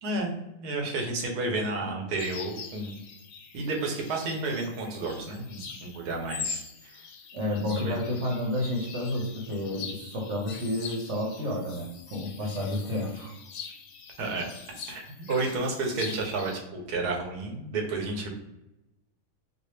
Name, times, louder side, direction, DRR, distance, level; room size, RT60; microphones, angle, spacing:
voice 1, 0.0-3.0 3.5-7.0 7.8-7.9 14.2-14.5 14.9-18.3, right 3 dB, 85° right, 1 dB, 1.4 m, -31 dB
sound 1, 2.2-16.6, left 6 dB, 75° left, 1.0 m, -43 dB
voice 2, 7.3-13.3, left 1 dB, 55° right, -2 dB, 1.0 m, -30 dB
4.1 x 2.1 x 3.2 m, 0.92 s
omnidirectional pair, 1.6 m